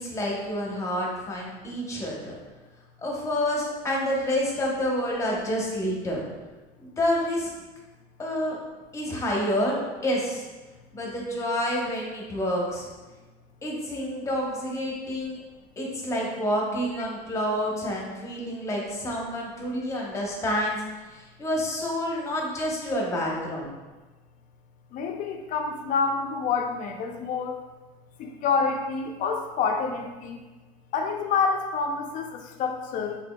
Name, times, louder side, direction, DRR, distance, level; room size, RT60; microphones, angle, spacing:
voice 1, 0.0-2.3 3.0-6.2 6.8-7.5 8.2-8.6 8.9-10.4 10.9-12.9 13.6-15.4 15.8-20.8 21.1-23.7, equal, 15° left, -2 dB, 0.9 m, -28 dB
voice 2, 24.9-27.5 28.2-30.4 30.9-33.2, left 5 dB, 45° left, 4 dB, 0.5 m, -27 dB
4.2 x 3.7 x 2.3 m, 1.2 s
cardioid pair, 135°, 19 cm